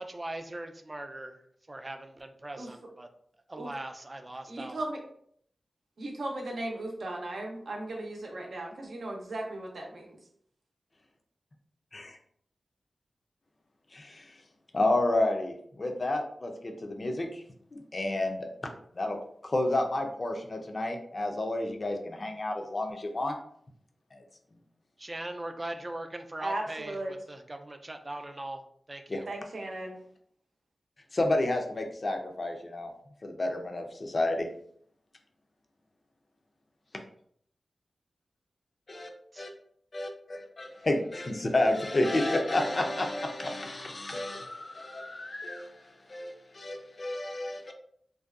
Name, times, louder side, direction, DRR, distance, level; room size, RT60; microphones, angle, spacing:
voice 1, 0.0-1.3 1.7-3.1 3.5-4.8 25.0-28.6 28.9-29.3 39.3-39.5, right 1 dB, 30° right, 6 dB, 0.3 m, -40 dB
voice 2, 4.5-5.0 6.0-10.2 26.4-27.2 29.3-30.0, right 1 dB, 75° right, 0 dB, 0.6 m, -36 dB
voice 3, 13.9-14.2 14.7-17.4 17.7-18.5 19.0-19.2 19.4-23.4 24.1-24.2 29.1-29.2 31.1-32.9 33.2-34.5 38.9-39.1 39.4-39.5 39.9-45.7 46.1-47.7, left 2 dB, 45° left, 3 dB, 0.4 m, -30 dB
2.6 x 2.2 x 2.3 m, 0.65 s
cardioid pair, 60°, 0 cm